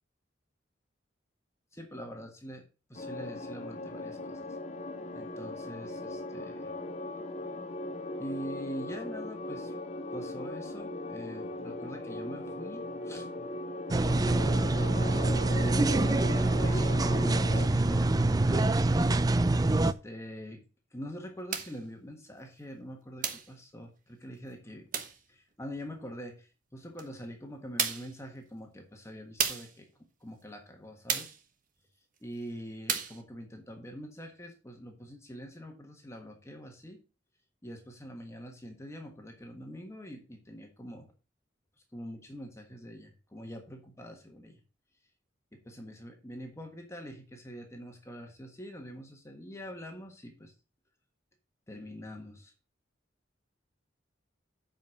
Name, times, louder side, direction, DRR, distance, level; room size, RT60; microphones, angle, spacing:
voice 1, 1.7-2.6 2.9-4.4 5.1-6.7 8.2-9.7 10.1-13.5 15.5-19.2 19.6-20.6 20.9-24.9 25.3-29.9 30.2-31.3 32.2-37.0 37.6-41.1 41.9-44.6 45.5-50.5 51.7-52.5, equal, 15° left, 3 dB, 1.5 m, -44 dB
sound 1, 2.9-17.7, left 2 dB, 35° left, 1.0 m, -39 dB
sound 2, 13.9-19.9, right 2 dB, 20° right, 0.4 m, -25 dB
sound 3, 21.5-21.8 23.2-23.5 24.9-25.2 27.0-27.1 27.8-28.2 29.4-29.8 31.1-31.4 32.9-33.2, right 7 dB, 45° right, 1.2 m, -32 dB
7.4 x 5.2 x 6.4 m, 0.34 s
head